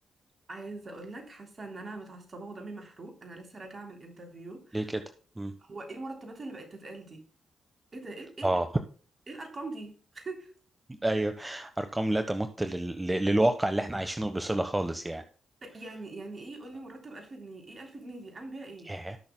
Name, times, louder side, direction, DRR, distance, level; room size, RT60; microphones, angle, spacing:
voice 1, 0.5-4.9 5.6-7.2 7.9-8.5 9.3-10.5 15.6-18.9, right 2 dB, 45° right, 3.5 m, -42 dB
voice 2, 11.0-15.2 18.9-19.2, right 1 dB, 20° right, 1.1 m, -29 dB
18.5 x 6.3 x 2.2 m
hypercardioid pair, 45°, 0 cm